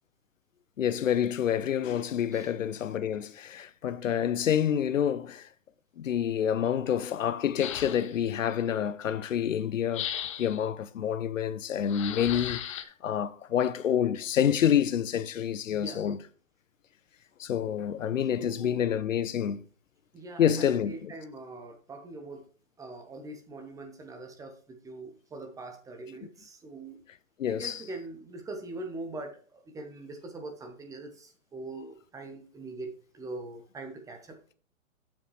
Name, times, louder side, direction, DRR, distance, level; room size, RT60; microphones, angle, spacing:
voice 1, 0.8-5.5 6.0-10.1 10.4-16.2 17.4-19.6 20.4-21.1 27.4-27.8, left 9 dB, 70° left, 0.7 m, -28 dB
sound 1, 7.6-8.3 9.9-10.7 11.9-12.8, left 10 dB, 25° left, 0.5 m, -36 dB
voice 2, 15.7-16.1 18.3-18.9 20.1-22.4 22.8-27.0 27.5-34.3, right 2 dB, 10° right, 0.8 m, -42 dB
7.4 x 7.4 x 3.2 m
hypercardioid pair, 125°, 41 cm